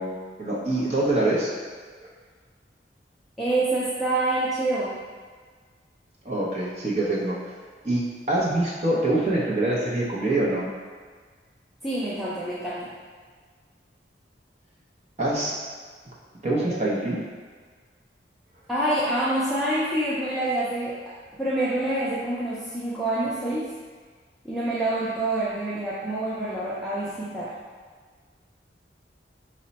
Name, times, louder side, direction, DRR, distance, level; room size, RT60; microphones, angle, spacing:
voice 1, 0.0-1.5 2.0-2.1 6.2-7.4 7.8-10.7 15.2-15.5 16.4-17.2, right 1 dB, 40° right, -5 dB, 0.7 m, -25 dB
voice 2, 3.4-4.9 11.8-12.9 18.7-23.7 24.4-27.5, right 1 dB, ahead, -9 dB, 0.5 m, -27 dB
5.0 x 2.1 x 4.0 m, 1.5 s
head